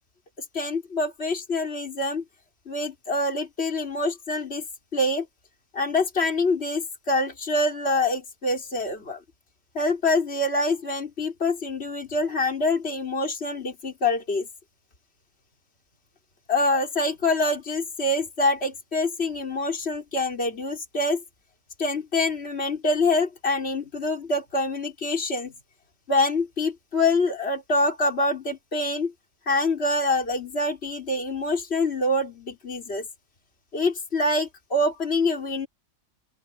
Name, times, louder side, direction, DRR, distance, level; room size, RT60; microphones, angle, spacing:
voice 1, 0.5-2.2 2.7-4.6 4.9-5.3 5.7-9.2 9.7-14.5 16.5-21.2 21.8-25.5 26.1-29.1 29.5-33.1 33.7-35.7, left 2 dB, 55° left, 4.1 m, -25 dB
open air
omnidirectional pair, 1.3 m